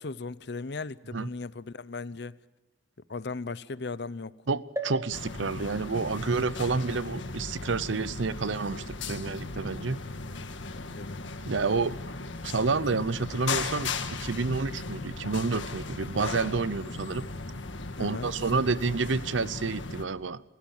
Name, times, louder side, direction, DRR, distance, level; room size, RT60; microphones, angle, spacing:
voice 1, 0.0-2.4 3.1-4.3 8.1-8.2 10.7-11.2 18.0-18.3, left 3 dB, 60° left, 0.7 m, -37 dB
voice 2, 4.5-10.0 11.4-11.9 12.4-13.9 14.2-17.3 18.0-20.4, right 4 dB, 80° right, 0.8 m, -29 dB
sound 1, 4.8-8.4 9.0-9.1 9.3-9.4, right 2 dB, 15° right, 1.8 m, -42 dB
sound 2, 5.1-20.1, left 3 dB, 80° left, 1.7 m, -37 dB
29.0 x 15.5 x 7.2 m
head